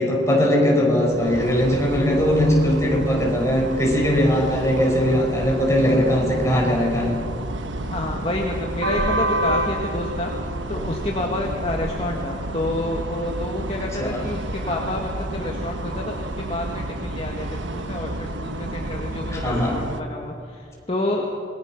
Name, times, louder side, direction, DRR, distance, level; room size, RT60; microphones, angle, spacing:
voice 1, 0.0-7.1 14.0-14.2 19.3-19.7, equal, 15° left, -1 dB, 5.0 m, -20 dB
sound 1, 0.9-20.0, right 1 dB, 85° right, 1.2 m, -29 dB
voice 2, 7.9-10.3 10.7-21.3, left 1 dB, 30° left, 0 dB, 1.8 m, -29 dB
27.0 x 21.0 x 6.0 m, 2.4 s
head